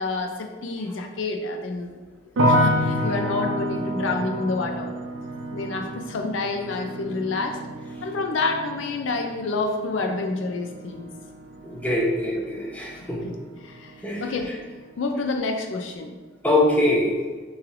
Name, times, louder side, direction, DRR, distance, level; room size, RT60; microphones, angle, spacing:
voice 1, 0.0-2.0 2.4-4.9 5.5-7.6 8.0-11.1 13.0-13.3 13.6-14.5 15.0-16.1, left 3 dB, 75° left, 3 dB, 0.4 m, -28 dB
sound 1, 2.4-13.4 13.7-14.4, equal, 80° right, 0.5 m, -29 dB
voice 2, 11.6-13.2 14.0-14.2 16.4-17.1, left 1 dB, 10° left, -3 dB, 0.8 m, -23 dB
5.8 x 3.2 x 2.5 m, 1.4 s
head